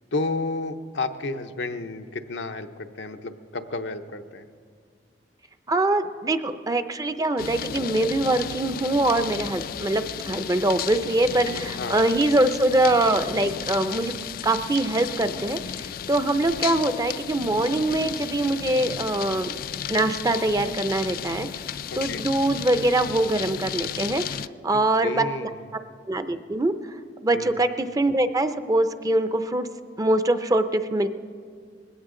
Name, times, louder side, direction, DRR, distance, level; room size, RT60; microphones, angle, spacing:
voice 1, 0.1-4.5 11.8-12.0 21.9-22.2 25.0-25.7 27.3-27.6, left 3 dB, 85° left, 7 dB, 0.8 m, -31 dB
voice 2, 5.7-19.6 19.9-21.5 22.0-25.5 26.1-26.7 27.2-29.7 30.0-31.1, right 2 dB, 20° right, 10 dB, 0.5 m, -23 dB
sound 1, 7.4-24.5, left 9 dB, 55° left, 0.3 m, -34 dB
20.5 x 16.5 x 3.8 m, 2.1 s
head